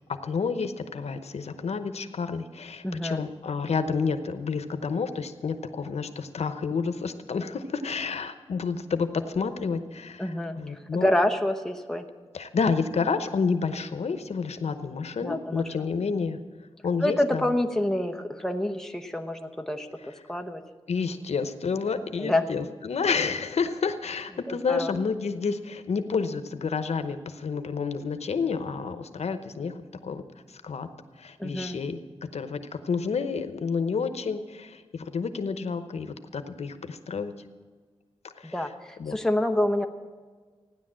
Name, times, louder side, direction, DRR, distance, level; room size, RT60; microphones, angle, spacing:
voice 1, 0.2-11.1 12.3-16.4 16.8-17.5 20.9-29.7 30.0-30.2 30.5-30.9 31.2-32.0 32.3-37.3 38.4-38.7 39.0-39.2, left 5 dB, 90° left, 9 dB, 0.9 m, -29 dB
voice 2, 2.8-3.2 10.2-12.1 15.2-15.9 17.0-20.6 22.2-22.5 24.5-24.9 31.4-31.8 38.5-39.9, left 1 dB, 5° left, 5 dB, 0.9 m, -27 dB
15.5 x 10.5 x 7.5 m, 1.5 s
wide cardioid pair, 130°, 11 cm